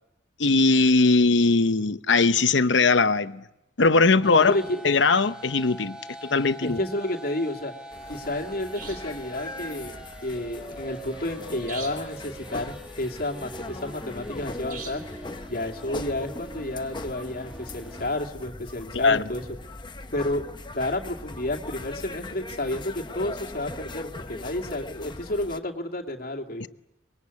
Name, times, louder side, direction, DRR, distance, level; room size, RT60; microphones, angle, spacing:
voice 1, 0.4-3.4 3.8-4.5 4.8-6.8 19.0-19.2 26.6-26.7, left 3 dB, 85° left, 0.9 m, -20 dB
voice 2, 4.2-4.8 6.6-7.7 8.1-9.9 10.2-15.0 15.5-19.4 20.1-26.7, left 1 dB, 55° left, 2.5 m, -31 dB
sound 1, 4.2-18.2, right 1 dB, 5° right, 2.0 m, -43 dB
sound 2, 6.5-6.6 8.7-9.2 11.7-12.2 14.7-15.2, right 5 dB, 55° right, 3.3 m, -41 dB
sound 3, 7.9-25.6, left 2 dB, 25° left, 0.9 m, -40 dB
25.0 x 22.0 x 8.4 m
head